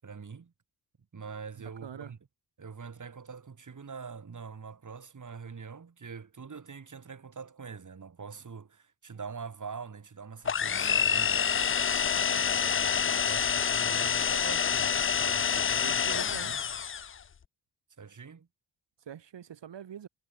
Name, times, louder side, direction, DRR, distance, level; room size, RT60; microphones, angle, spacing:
voice 1, 0.0-0.5 1.1-2.2 2.6-11.6 12.1-15.9 16.4-16.6 18.0-18.5, right 5 dB, 45° right, 7.7 m, -44 dB
voice 2, 1.8-2.2 15.8-16.6 19.0-20.1, right 9 dB, 75° right, 5.0 m, -44 dB
sound 1, 10.5-17.2, left 7 dB, 30° left, 0.5 m, -27 dB
wide cardioid pair, 125°, 43 cm